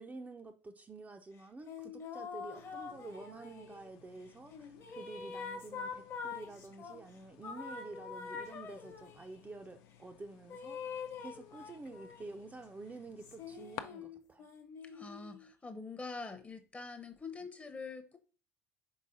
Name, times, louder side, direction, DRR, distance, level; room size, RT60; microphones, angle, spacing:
voice 1, 0.0-14.5, right 3 dB, 20° right, 0.5 m, -49 dB
sound 1, 1.7-3.9 4.5-7.0 7.4-9.3 10.5-12.4 13.2-15.5, left 6 dB, 40° left, 1.0 m, -45 dB
sound 2, 2.6-13.8, left 11 dB, 70° left, 0.4 m, -56 dB
voice 2, 14.8-18.2, left 4 dB, 20° left, 0.7 m, -45 dB
4.8 x 3.7 x 2.6 m
hypercardioid pair, 70°, 7 cm